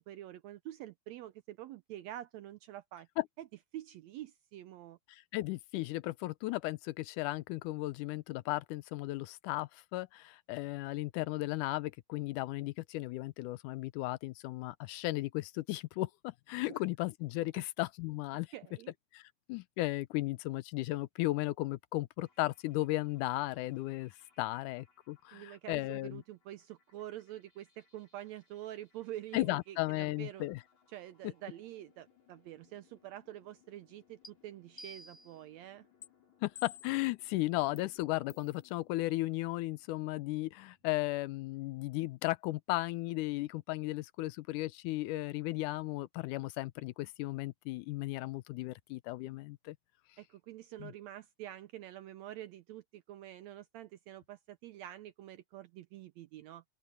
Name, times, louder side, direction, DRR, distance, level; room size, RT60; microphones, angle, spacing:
voice 1, 0.0-3.1 3.4-3.5 3.7-5.0 16.7-16.8 17.5-17.6 18.5-18.9 25.3-30.5 30.9-35.9 50.2-56.6, right 13 dB, 75° right, 1.7 m, -47 dB
voice 2, 5.1-18.5 19.1-19.2 19.5-24.1 24.4-26.2 29.3-30.6 36.4-49.8 50.8-50.9, left 18 dB, 90° left, 2.2 m, -35 dB
sound 1, 22.2-41.7, left 7 dB, 65° left, 7.2 m, -69 dB
sound 2, 34.2-34.3 34.8-35.4 36.0-36.1 36.6-37.1 37.8-37.9 38.3-38.5, left 4 dB, 30° left, 0.5 m, -50 dB
open air
omnidirectional pair, 3.5 m